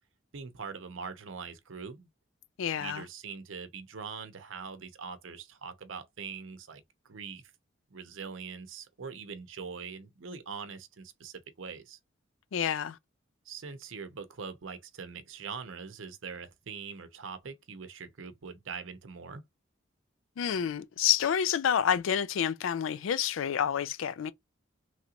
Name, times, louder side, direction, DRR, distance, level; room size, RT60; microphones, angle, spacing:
voice 1, 0.3-2.1 2.8-7.4 7.9-12.0 13.5-19.4, right 5 dB, 80° right, 0.7 m, -42 dB
voice 2, 2.6-3.0 12.5-13.0 20.4-24.3, left 8 dB, 80° left, 0.4 m, -28 dB
3.2 x 2.9 x 2.4 m
head